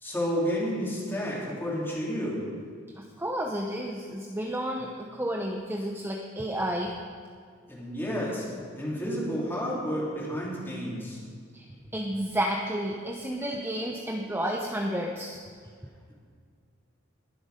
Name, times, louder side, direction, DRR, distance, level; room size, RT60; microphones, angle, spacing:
voice 1, 0.0-2.4 7.7-8.4 8.8-11.2, equal, 10° left, -6 dB, 3.7 m, -31 dB
voice 2, 2.9-6.9 11.5-11.7 11.9-15.4, equal, 10° right, 1 dB, 0.8 m, -31 dB
21.0 x 7.9 x 5.2 m, 2.1 s
head